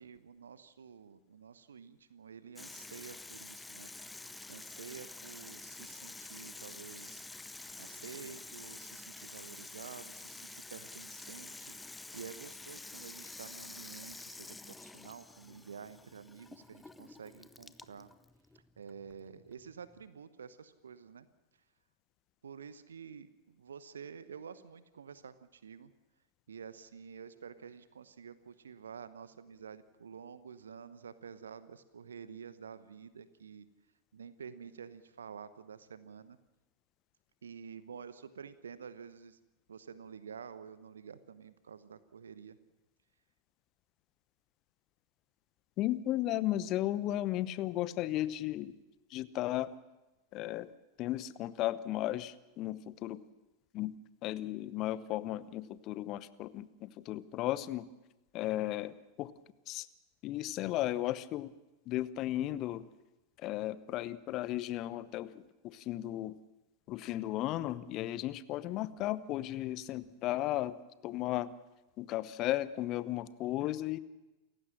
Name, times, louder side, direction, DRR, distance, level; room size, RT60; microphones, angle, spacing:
voice 1, 0.0-3.9 4.5-7.2 7.8-18.1 18.8-21.3 22.4-25.9 26.5-33.7 34.1-36.4 37.4-39.4 39.7-42.6, right 6 dB, 70° right, 14 dB, 1.0 m, -49 dB
Water tap faucet / Sink (filling or washing), 2.6-20.0, left 2 dB, 10° left, 0.6 m, -49 dB
voice 2, 45.8-48.7 49.1-49.7 50.3-50.7 51.0-53.2 53.7-53.9 54.2-57.9 58.3-59.3 59.7-59.9 60.2-61.5 61.9-62.9 63.4-65.3 65.6-66.3 66.9-70.7 71.0-71.5 72.0-74.0, left 14 dB, 35° left, 17 dB, 0.9 m, -35 dB
29.0 x 15.5 x 6.2 m, 1.0 s
figure-of-eight pair, 90°, 0 cm